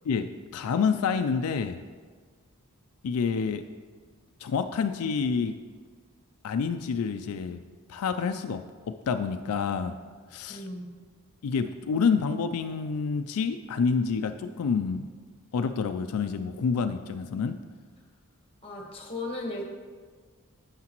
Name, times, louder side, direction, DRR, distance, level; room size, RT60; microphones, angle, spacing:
voice 1, 0.0-1.8 3.0-3.6 4.4-5.5 6.4-7.6 7.9-9.9 10.3-10.6 11.4-15.1 15.5-17.6, left 5 dB, 80° left, 8 dB, 0.4 m, -28 dB
voice 2, 10.5-10.9 18.6-19.6, left 2 dB, 25° left, 1 dB, 1.2 m, -36 dB
9.6 x 7.3 x 3.0 m, 1.5 s
head